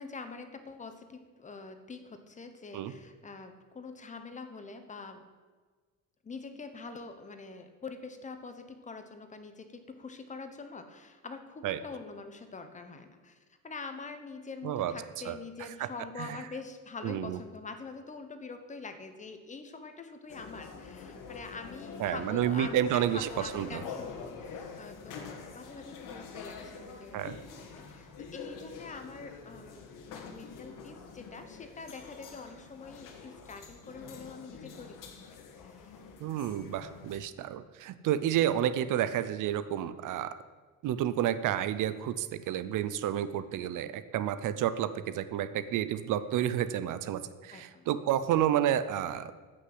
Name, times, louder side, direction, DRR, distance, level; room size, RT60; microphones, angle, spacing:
voice 1, 0.0-5.3 6.2-35.0 35.6-36.0 47.5-47.9, left 4 dB, 20° left, 8 dB, 1.0 m, -45 dB
voice 2, 17.0-17.4 22.0-23.8 27.1-27.4 36.2-40.4 40.8-49.3, right 11 dB, 70° right, 13 dB, 0.7 m, -30 dB
sound 1, 20.3-37.2, left 5 dB, 75° left, 1.9 m, -46 dB
14.0 x 6.5 x 7.8 m, 1.4 s
cardioid pair, 175°, 33 cm